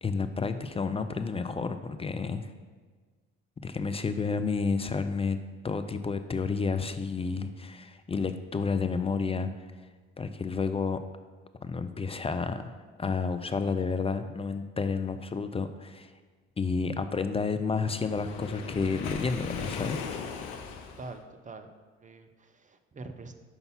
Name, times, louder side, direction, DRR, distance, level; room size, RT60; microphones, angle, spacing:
voice 1, 0.0-2.5 3.6-5.4 5.6-9.7 10.2-11.0 11.6-16.1 16.6-20.0, left 4 dB, 20° left, 10 dB, 0.4 m, -30 dB
Waves surf, 17.9-21.2, left 5 dB, 70° left, 0.8 m, -38 dB
voice 2, 21.0-21.7 22.0-23.4, right 3 dB, 25° right, 8 dB, 0.7 m, -44 dB
5.8 x 5.3 x 5.7 m, 1.4 s
hypercardioid pair, 55°, 31 cm